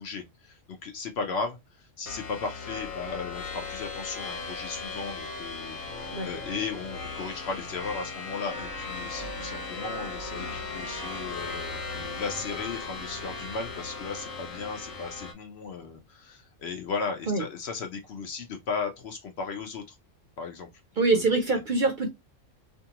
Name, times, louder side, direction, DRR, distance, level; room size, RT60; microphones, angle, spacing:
voice 1, 0.0-11.8 12.2-20.0 20.4-20.7 21.1-21.3, left 5 dB, 65° left, 0.7 m, -36 dB
sound 1, 2.1-15.3, left 3 dB, 80° left, 1.2 m, -37 dB
voice 2, 21.0-22.1, right 3 dB, 50° right, 0.6 m, -24 dB
2.6 x 2.4 x 2.8 m
omnidirectional pair, 1.4 m